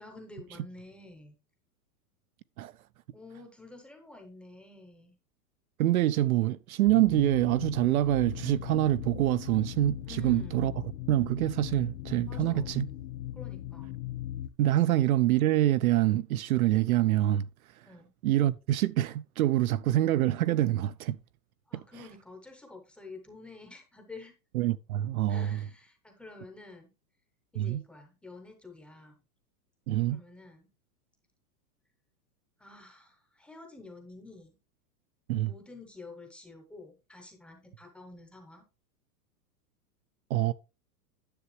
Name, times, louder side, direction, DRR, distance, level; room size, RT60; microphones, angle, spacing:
voice 1, 0.0-1.4 3.1-5.2 10.1-10.7 12.3-12.8 13.3-13.9 17.9-18.1 21.7-24.3 25.3-26.9 27.5-29.2 30.1-30.7 32.6-34.6 35.4-38.6, left 3 dB, ahead, 0.7 m, -49 dB
voice 2, 5.8-10.7 11.1-12.9 14.6-17.5 18.2-21.2 24.5-25.7 27.6-27.8 29.9-30.2 35.3-35.5 40.3-40.5, right 14 dB, 60° right, 0.5 m, -26 dB
sound 1, 6.9-14.5, left 11 dB, 70° left, 1.0 m, -39 dB
10.0 x 6.8 x 3.1 m
supercardioid pair, 165°, 49 cm